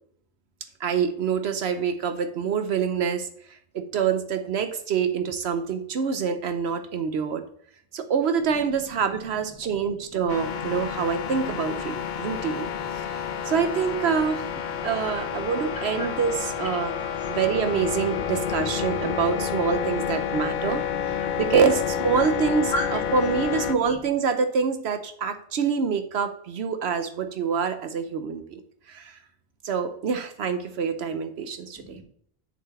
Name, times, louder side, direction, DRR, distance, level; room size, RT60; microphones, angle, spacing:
voice 1, 0.8-3.3 3.7-7.4 7.9-12.7 13.0-14.4 14.8-16.9 17.3-28.6 28.9-29.2 29.6-32.0, right 6 dB, 75° right, 8 dB, 1.0 m, -26 dB
sound 1, 10.3-23.7, left 8 dB, 55° left, 0.7 m, -29 dB
voice 2, 11.8-13.5 14.7-16.1 16.7-17.4 18.6-19.3 20.0-21.4 22.7-23.0 23.9-24.0 31.8-32.0, equal, 20° left, -3 dB, 2.6 m, -39 dB
7.0 x 5.2 x 7.0 m, 0.64 s
omnidirectional pair, 1.1 m